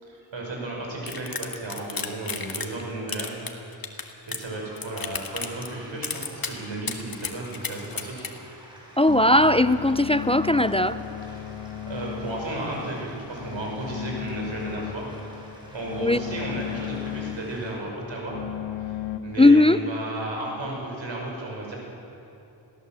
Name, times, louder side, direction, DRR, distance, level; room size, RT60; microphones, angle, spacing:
voice 1, 0.0-3.4 3.8-8.3 11.9-15.1 15.7-18.4 18.8-18.9 19.2-21.8, right 2 dB, 70° right, -1 dB, 6.0 m, -34 dB
sound 1, 1.1-2.8 3.1-4.5 4.8-5.7 6.0-6.5 6.9-8.3, left 4 dB, 50° left, 1.8 m, -32 dB
sound 2, 4.5-17.7, equal, 10° right, 6.2 m, -50 dB
voice 2, 9.0-11.0 16.0-16.2 19.4-19.8, left 1 dB, 15° left, 13 dB, 0.4 m, -18 dB
sound 3, 9.1-19.2, left 10 dB, 75° left, 1.2 m, -36 dB
21.5 x 16.5 x 7.6 m, 3.0 s
wide cardioid pair, 65°, 46 cm